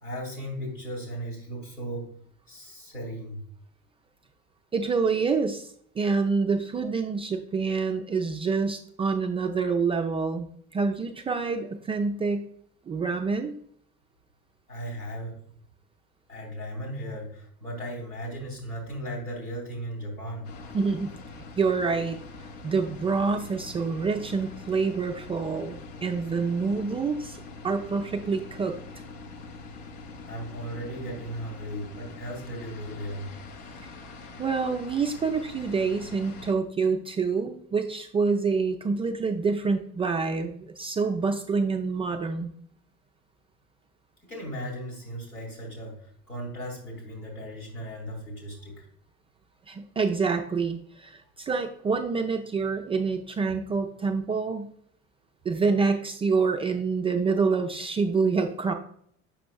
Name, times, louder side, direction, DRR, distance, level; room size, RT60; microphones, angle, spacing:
voice 1, 0.0-2.1 2.5-3.4 14.7-15.4 16.3-20.5 30.3-33.3 44.2-48.9, equal, 85° left, -4 dB, 2.4 m, -36 dB
voice 2, 4.7-10.5 10.7-12.5 12.9-13.5 20.7-21.2 21.6-22.2 22.6-27.4 27.6-28.8 33.8-33.9 34.4-42.5 49.7-54.7 55.4-58.7, right 4 dB, 15° right, 4 dB, 0.3 m, -27 dB
sound 1, 20.4-36.5, left 3 dB, 60° left, 0.9 m, -44 dB
7.1 x 6.0 x 2.3 m, 0.63 s
figure-of-eight pair, 60°, 43 cm